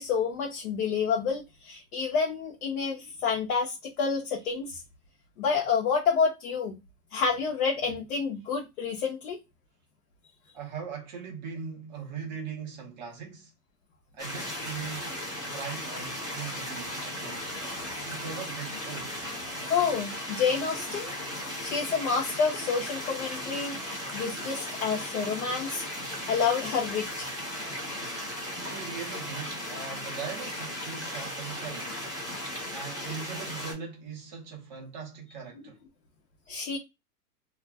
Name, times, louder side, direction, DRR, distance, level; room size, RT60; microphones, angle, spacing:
voice 1, 0.0-4.8 5.4-6.8 7.1-9.4 19.6-21.1 21.6-25.8 26.3-27.3 36.5-36.8, left 5 dB, 60° left, 0.8 m, -29 dB
voice 2, 10.5-13.5 14.1-15.2 15.5-17.5 18.0-19.2 28.6-32.0 32.7-35.8, right 6 dB, 30° right, 0.5 m, -40 dB
sound 1, 14.2-33.7, equal, 5° left, 0.9 m, -36 dB
2.4 x 2.0 x 3.2 m
supercardioid pair, 170°, 48 cm